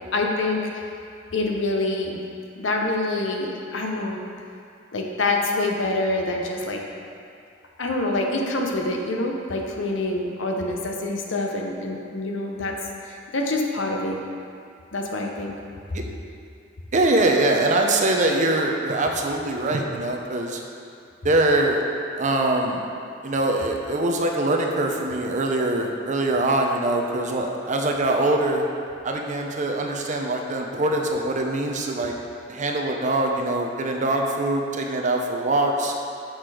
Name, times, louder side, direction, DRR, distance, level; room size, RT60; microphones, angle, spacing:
voice 1, 0.1-0.6 1.3-2.2 2.6-4.2 4.9-6.8 7.8-12.7 13.0-14.2 14.9-15.5, left 2 dB, 70° left, 1 dB, 0.9 m, -26 dB
voice 2, 16.9-20.6 21.2-21.8 22.2-22.8 23.2-28.6 29.0-32.1 32.5-35.9, right 2 dB, 40° right, 1 dB, 0.7 m, -23 dB
6.4 x 6.0 x 4.9 m, 2.5 s
head